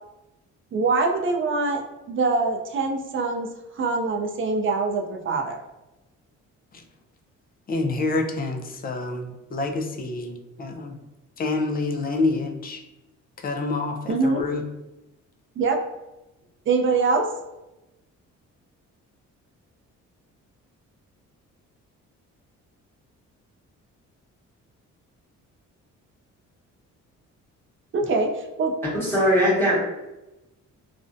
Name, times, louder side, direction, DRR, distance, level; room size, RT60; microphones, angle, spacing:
voice 1, 0.7-1.8 2.1-3.5 3.8-5.6 14.1-14.4 15.6-15.8 16.7-17.3 27.9-28.7, right 3 dB, 40° right, 3 dB, 0.5 m, -23 dB
voice 2, 7.7-11.0 11.4-12.8 13.4-14.6, left 3 dB, 30° left, 4 dB, 0.4 m, -27 dB
voice 3, 28.9-29.8, equal, 5° left, -7 dB, 1.1 m, -20 dB
2.5 x 2.1 x 2.5 m, 0.97 s
cardioid pair, 90°, 30 cm